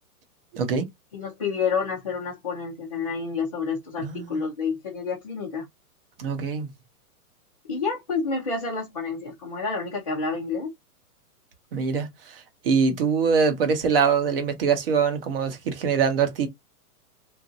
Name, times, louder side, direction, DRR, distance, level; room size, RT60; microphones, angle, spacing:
voice 1, 0.5-0.9 4.0-4.4 6.2-6.7 11.7-16.5, right 6 dB, 40° right, 0.7 m, -24 dB
voice 2, 1.1-5.7 7.7-10.7, left 5 dB, 25° left, 0.4 m, -29 dB
2.9 x 2.5 x 2.5 m
hypercardioid pair, 165°, 45 cm